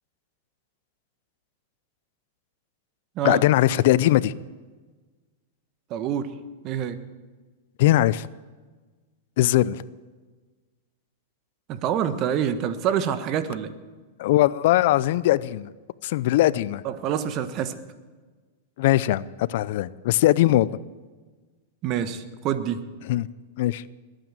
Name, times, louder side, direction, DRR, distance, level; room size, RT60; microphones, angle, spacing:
voice 1, 3.2-4.3 7.8-8.3 9.4-9.8 14.2-15.7 16.0-16.8 18.8-20.8 23.1-23.3 23.6-23.8, left 15 dB, 65° left, 19 dB, 0.5 m, -20 dB
voice 2, 5.9-6.3 6.6-7.0 11.7-13.7 16.8-17.7 21.8-22.8, right 9 dB, 40° right, 11 dB, 1.3 m, -26 dB
20.5 x 9.2 x 7.5 m, 1.4 s
hypercardioid pair, 120°, 0 cm